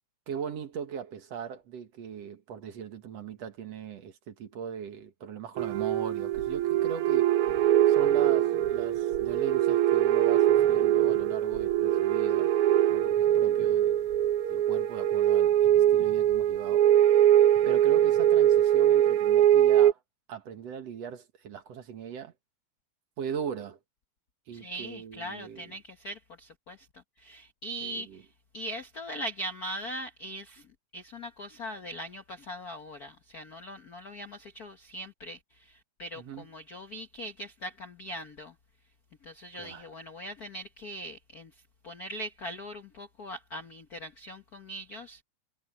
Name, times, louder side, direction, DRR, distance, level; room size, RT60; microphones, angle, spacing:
voice 1, 0.3-7.3 7.9-12.5 12.9-14.1 14.5-16.8 17.6-20.0 20.3-22.3 23.2-23.8 24.5-25.7 27.8-28.2 36.1-36.5 39.6-39.9, right 7 dB, 60° right, 2.5 m, -39 dB
sound 1, 5.6-19.9, right 11 dB, 80° right, 1.2 m, -23 dB
voice 2, 24.5-26.9 27.2-28.3 28.5-30.7 30.9-38.5 39.2-41.5 41.8-45.2, equal, 55° left, 1.0 m, -40 dB
omnidirectional pair, 3.4 m